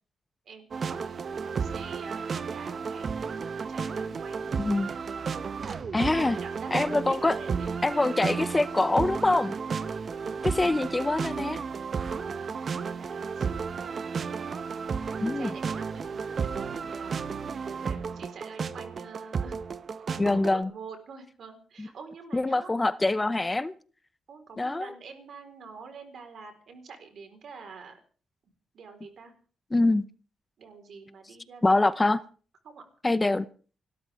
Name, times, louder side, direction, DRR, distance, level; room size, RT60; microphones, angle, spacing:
voice 1, 0.5-3.3 3.7-4.5 5.3-7.7 10.1-11.0 12.1-14.1 15.4-19.6 20.0-22.7 24.3-28.0 28.7-29.3 30.6-32.1 32.6-32.8, right 5 dB, 65° right, 4.2 m, -47 dB
sound 1, 0.7-20.6, right 5 dB, 50° right, 0.9 m, -33 dB
voice 2, 4.6-4.9 5.9-6.4 6.7-7.4 7.8-9.5 10.4-11.6 15.2-15.5 20.2-20.7 21.8-21.9 22.3-23.7 24.6-24.9 29.7-30.0 31.6-32.2 33.0-33.4, left 2 dB, 20° left, 0.7 m, -24 dB
29.5 x 13.0 x 3.5 m
cardioid pair, 90°, 0 cm